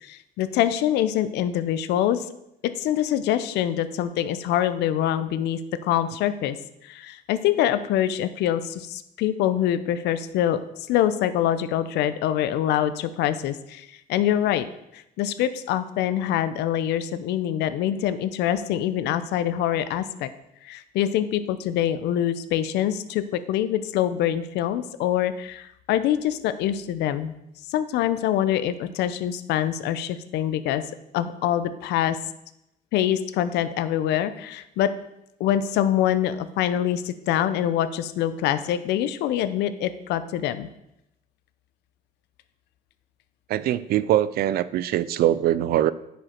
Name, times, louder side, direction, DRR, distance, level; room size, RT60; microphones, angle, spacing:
voice 1, 0.0-2.3 2.6-6.6 6.8-10.6 10.9-14.7 14.9-20.3 20.6-27.3 27.7-30.8 31.1-32.2 32.9-34.9 35.4-40.7, left 11 dB, 85° left, 13 dB, 0.6 m, -25 dB
voice 2, 43.5-45.9, right 12 dB, 65° right, 17 dB, 0.4 m, -22 dB
10.0 x 5.2 x 4.4 m, 0.83 s
cardioid pair, 110°, 17 cm